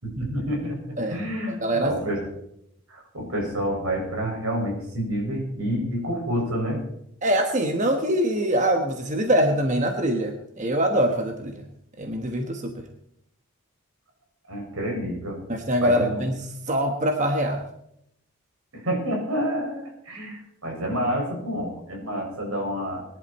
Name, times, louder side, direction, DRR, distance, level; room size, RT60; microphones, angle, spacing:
voice 1, 0.0-2.2 2.9-6.8 14.5-15.4 15.8-16.2 18.7-23.1, equal, 85° right, 0 dB, 5.9 m, -28 dB
voice 2, 1.5-1.9 7.2-11.6 12.0-12.9 15.5-17.6, equal, 35° right, 4 dB, 1.2 m, -24 dB
21.5 x 11.0 x 4.3 m, 0.76 s
head